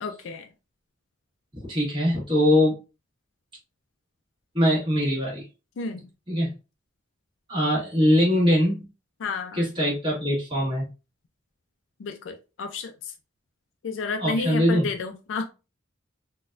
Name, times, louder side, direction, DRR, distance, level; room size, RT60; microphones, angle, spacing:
voice 1, 0.0-0.5 5.8-6.0 9.2-9.6 12.0-12.9 13.8-15.4, left 4 dB, 75° left, 0.4 m, -31 dB
voice 2, 1.7-2.7 4.5-5.4 6.3-6.5 7.5-8.8 9.5-10.8 14.2-14.9, equal, 25° right, 1.5 m, -22 dB
3.9 x 2.2 x 2.5 m
head